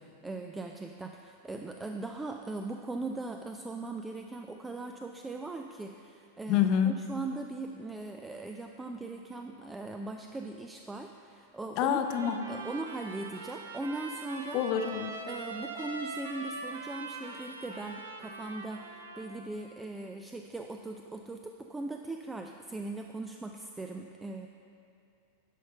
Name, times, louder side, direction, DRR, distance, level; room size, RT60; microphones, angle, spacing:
voice 1, 0.0-14.6 15.3-24.5, right 2 dB, 10° right, 4 dB, 0.4 m, -39 dB
voice 2, 6.5-7.0 11.8-12.4 14.5-15.2, left 9 dB, 40° left, 7 dB, 0.6 m, -27 dB
Trumpet, 11.9-19.5, right 3 dB, 70° right, 0.8 m, -42 dB
11.0 x 5.5 x 5.7 m, 2.6 s
figure-of-eight pair, 90°, 0 cm